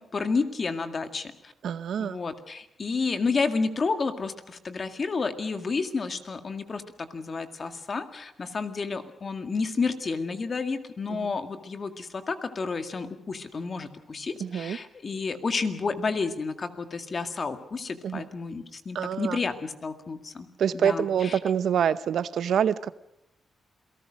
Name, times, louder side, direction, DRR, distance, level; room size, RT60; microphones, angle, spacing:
voice 1, 0.0-1.5 2.0-20.5 20.7-21.4, left 4 dB, 40° left, 2.0 m, -31 dB
voice 2, 1.6-2.2 11.1-11.3 14.4-14.8 18.0-18.3 18.9-19.4 20.6-22.9, right 8 dB, 75° right, 0.8 m, -26 dB
28.0 x 19.0 x 6.4 m
cardioid pair, 115°, 0 cm